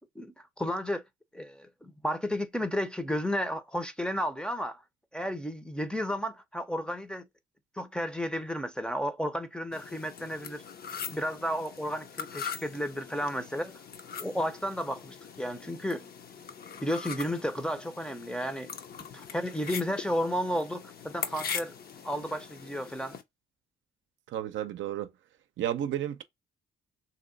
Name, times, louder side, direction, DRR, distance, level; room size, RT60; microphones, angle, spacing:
voice 1, 0.2-1.0 1.3-4.8 5.1-7.3 7.8-10.6 11.1-13.8 14.2-16.0 16.8-18.7 19.1-21.7 22.0-23.2, equal, 5° left, 0.6 m, -32 dB
sound 1, 9.7-23.2, left 7 dB, 50° left, 0.6 m, -42 dB
voice 2, 24.3-25.1 25.6-26.2, right 11 dB, 70° right, 0.6 m, -32 dB
3.1 x 2.8 x 3.9 m
cardioid pair, 90°, 20 cm